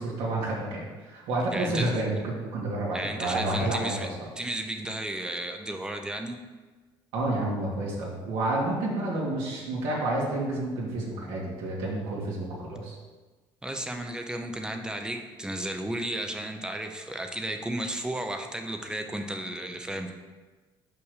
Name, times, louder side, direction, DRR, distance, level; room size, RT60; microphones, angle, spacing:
voice 1, 0.0-4.1 7.1-13.0, right 2 dB, 85° right, -5 dB, 2.3 m, -29 dB
voice 2, 1.5-1.9 2.9-4.1 4.4-6.4 13.6-20.1, right 1 dB, 10° right, 5 dB, 0.7 m, -33 dB
5.8 x 5.3 x 6.4 m, 1.3 s
cardioid pair, 135°, 9 cm